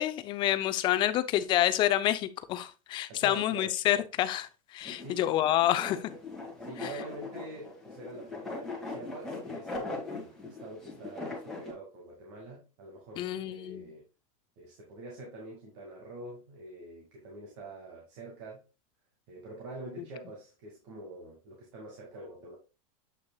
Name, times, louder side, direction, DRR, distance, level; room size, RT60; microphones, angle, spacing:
voice 1, 0.0-6.1 6.8-6.9 13.2-13.9, left 13 dB, 25° left, 0.5 m, -28 dB
voice 2, 3.1-3.7 5.0-5.3 6.6-14.1 14.6-18.6 19.3-22.6, right 2 dB, 50° right, 2.2 m, -46 dB
sound 1, 4.8-11.7, left 3 dB, ahead, 2.1 m, -40 dB
8.2 x 5.8 x 2.3 m
supercardioid pair, 160°, 19 cm